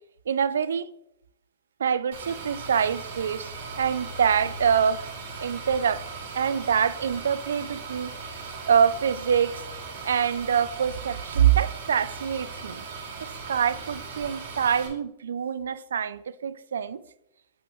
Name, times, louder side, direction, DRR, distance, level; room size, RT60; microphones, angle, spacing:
voice 1, 0.3-0.9 1.8-5.1 5.4-6.0 6.3-8.1 8.7-9.6 10.1-12.8 13.2-17.0, right 8 dB, 90° right, 0.4 m, -25 dB
sound 1, 2.1-14.9, right 4 dB, 75° right, 2.5 m, -38 dB
8.3 x 5.7 x 3.1 m
hypercardioid pair, 135°, 0 cm